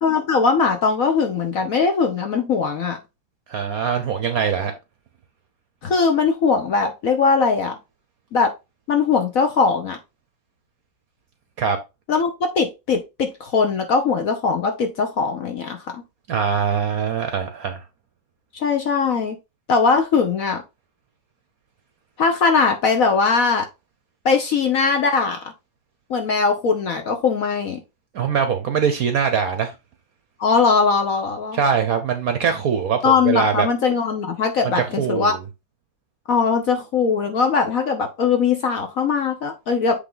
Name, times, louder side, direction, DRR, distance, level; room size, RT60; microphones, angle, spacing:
voice 1, 0.0-3.0 5.8-7.8 8.3-8.5 8.9-10.0 12.1-12.3 12.6-16.0 18.5-19.4 19.7-20.6 22.2-23.7 24.2-25.4 26.1-27.8 30.4-31.6 33.0-35.3 36.3-40.0, left 5 dB, 55° left, 1.0 m, -20 dB
voice 2, 3.5-4.7 11.6-11.8 16.3-17.8 28.1-29.7 31.5-33.7 34.6-35.4, right 7 dB, 60° right, 1.0 m, -22 dB
8.0 x 3.3 x 3.9 m
omnidirectional pair, 2.1 m